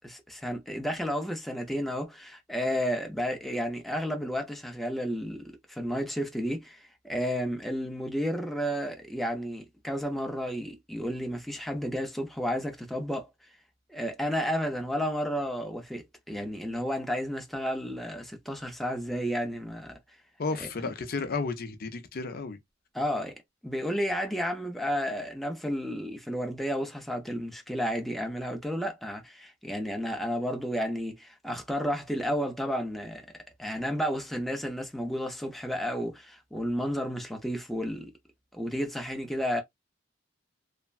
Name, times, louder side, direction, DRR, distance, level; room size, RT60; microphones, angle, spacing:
voice 1, 0.0-13.3 13.9-19.9 20.6-20.9 22.9-23.3 23.6-33.2 33.6-38.1 38.5-39.6, equal, ahead, 0.6 m, -32 dB
voice 2, 20.4-22.6, left 4 dB, 55° left, 0.5 m, -33 dB
3.2 x 2.1 x 2.4 m
head